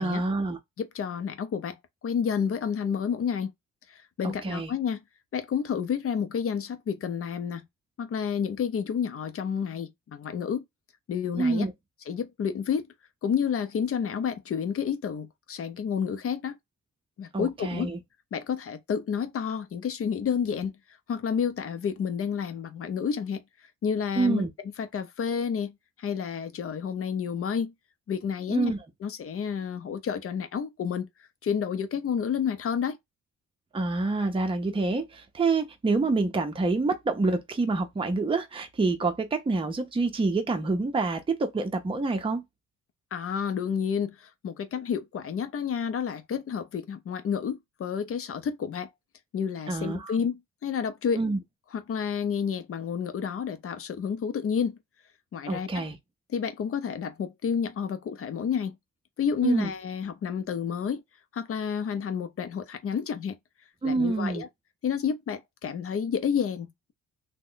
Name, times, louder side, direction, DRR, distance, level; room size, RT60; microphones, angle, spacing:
voice 1, 0.0-0.6 4.2-4.7 11.4-11.7 17.3-18.0 24.2-24.5 28.5-28.8 33.7-42.4 49.7-50.2 51.1-51.4 55.5-56.0 59.4-59.7 63.8-64.4, right 3 dB, 20° right, 0.6 m, -27 dB
voice 2, 0.8-3.5 3.9-5.0 5.3-7.7 8.0-10.6 11.1-11.6 12.1-12.9 13.2-16.6 17.2-17.9 18.3-20.7 21.1-23.4 23.8-27.7 28.1-28.7 29.0-31.1 31.4-33.0 43.1-48.9 49.3-51.2 51.7-54.8 55.3-55.8 56.3-58.7 59.2-61.0 61.3-63.4 63.8-64.5 64.8-66.9, left 7 dB, 50° left, 0.7 m, -30 dB
2.9 x 2.2 x 3.8 m
cardioid pair, 90°, 30 cm